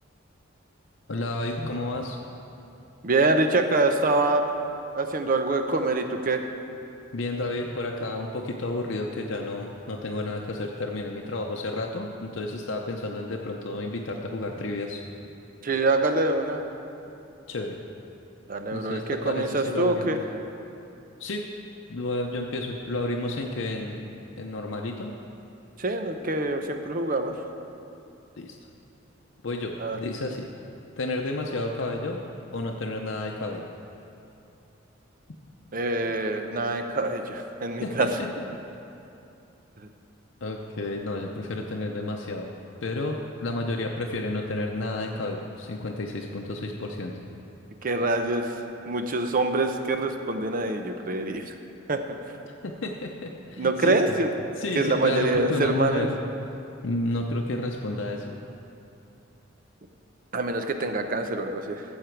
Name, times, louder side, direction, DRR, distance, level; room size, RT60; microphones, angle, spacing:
voice 1, 1.1-2.2 7.1-15.0 17.5-17.7 18.7-20.2 21.2-21.4 21.9-25.1 28.4-28.6 29.4-30.5 31.0-32.2 32.5-33.7 37.8-38.1 38.5-38.6 40.4-42.5 42.8-47.1 52.4-54.1 54.6-56.1 56.8-58.3, left 2 dB, 65° left, 1 dB, 0.6 m, -31 dB
voice 2, 3.0-4.5 4.9-6.4 15.6-16.6 18.5-20.2 25.8-27.3 29.8-30.0 35.7-38.1 39.8-39.9 47.8-48.5 48.9-51.5 51.9-52.0 53.6-54.3 54.7-56.1 60.3-61.8, right 2 dB, 45° right, 6 dB, 0.7 m, -25 dB
14.5 x 7.3 x 4.6 m, 2.7 s
head